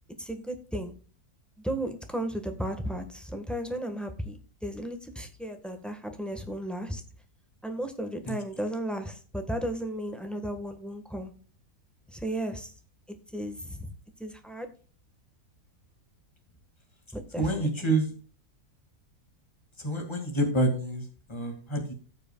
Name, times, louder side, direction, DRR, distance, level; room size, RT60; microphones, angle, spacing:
voice 1, 0.2-0.9 1.6-7.0 7.6-11.3 12.1-12.7 13.3-13.9 14.2-14.7 17.1-17.9, right 1 dB, ahead, 5 dB, 1.3 m, -34 dB
voice 2, 17.4-18.1 19.8-21.9, right 2 dB, 15° left, 3 dB, 2.2 m, -28 dB
17.5 x 6.8 x 2.3 m, 0.38 s
omnidirectional pair, 1.7 m